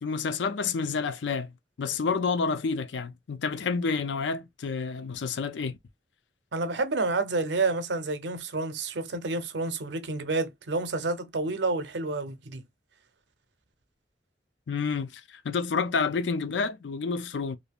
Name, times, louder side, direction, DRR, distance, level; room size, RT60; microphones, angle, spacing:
voice 1, 0.0-1.5 1.8-5.8 14.7-17.6, left 5 dB, 85° left, 0.4 m, -29 dB
voice 2, 6.5-12.6, right 3 dB, 80° right, 0.6 m, -29 dB
2.7 x 2.4 x 3.4 m
head